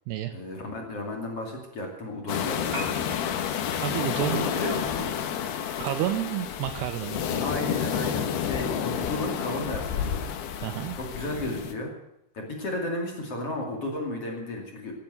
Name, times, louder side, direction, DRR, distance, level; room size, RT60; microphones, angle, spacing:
voice 1, 0.3-2.8 4.2-5.1 7.4-10.2 10.9-11.9 12.3-14.9, left 1 dB, 40° left, 1 dB, 2.9 m, -33 dB
sound 1, 2.3-11.7, left 8 dB, 70° left, 3.1 m, -30 dB
Piano, 2.6-10.7, right 1 dB, 35° right, 6.2 m, -47 dB
voice 2, 3.8-4.4 5.8-7.5 10.6-11.0, right 13 dB, 80° right, 9 dB, 2.5 m, -30 dB
15.5 x 11.0 x 8.0 m, 0.87 s
omnidirectional pair, 5.3 m